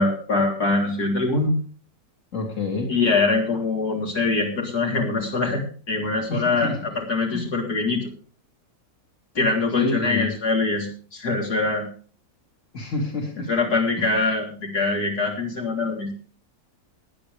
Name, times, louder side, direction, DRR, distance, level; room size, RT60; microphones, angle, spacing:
voice 1, 0.0-1.5 2.9-8.1 9.4-11.8 13.5-16.1, left 3 dB, 80° left, -1 dB, 4.0 m, -23 dB
voice 2, 2.3-2.9 6.3-6.8 7.3-7.5 9.7-10.3 12.7-13.5 14.0-14.1, left 3 dB, 50° left, 0 dB, 3.1 m, -28 dB
19.0 x 10.0 x 3.4 m, 0.41 s
omnidirectional pair, 1.6 m